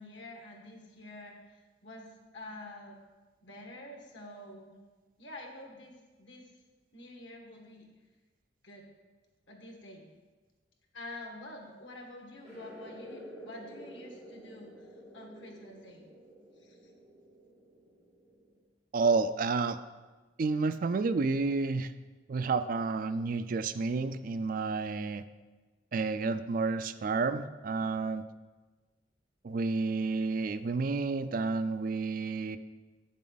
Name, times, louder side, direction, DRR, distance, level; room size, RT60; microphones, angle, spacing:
voice 1, 0.0-3.0 3.4-4.7 5.2-6.5 6.9-7.9 8.6-8.8 9.5-10.1 10.9-14.9 15.1-16.0 16.6-16.8, left 1 dB, 90° left, 1 dB, 1.6 m, -48 dB
sound 1, 12.4-18.6, equal, 5° left, 3.1 m, -50 dB
voice 2, 18.9-19.8 20.4-21.9 22.3-25.2 25.9-28.2 29.4-32.6, right 4 dB, 50° right, 12 dB, 0.4 m, -30 dB
8.4 x 7.4 x 4.0 m, 1.3 s
head